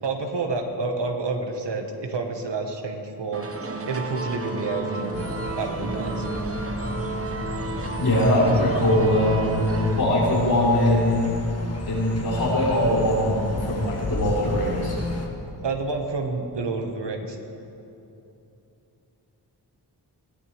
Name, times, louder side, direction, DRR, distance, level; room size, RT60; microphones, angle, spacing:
voice 1, 0.0-3.5 3.9-6.3 15.6-17.4, right 3 dB, 80° right, 3 dB, 1.7 m, -29 dB
sound 1, 3.3-10.0, right 3 dB, 35° right, 1.0 m, -32 dB
sound 2, 5.1-15.3, left 2 dB, 35° left, 1.7 m, -33 dB
voice 2, 8.0-9.7 10.0-11.3 11.9-15.0, left 1 dB, 60° left, -7 dB, 4.2 m, -21 dB
21.0 x 17.5 x 3.5 m, 2.9 s
wide cardioid pair, 145°, 42 cm